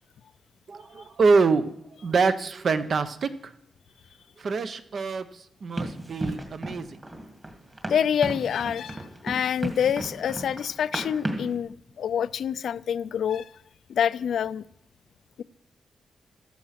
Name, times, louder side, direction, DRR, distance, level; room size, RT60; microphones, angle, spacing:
voice 1, 0.7-1.7 2.0-3.5 4.4-6.9, right 4 dB, 45° right, 11 dB, 0.9 m, -25 dB
Run, 5.8-11.6, right 1 dB, 25° right, 2.1 m, -35 dB
voice 2, 7.9-13.5 13.9-14.6, left 8 dB, 75° left, 16 dB, 0.5 m, -27 dB
14.5 x 13.5 x 5.9 m, 0.73 s
wide cardioid pair, 155°, 0 cm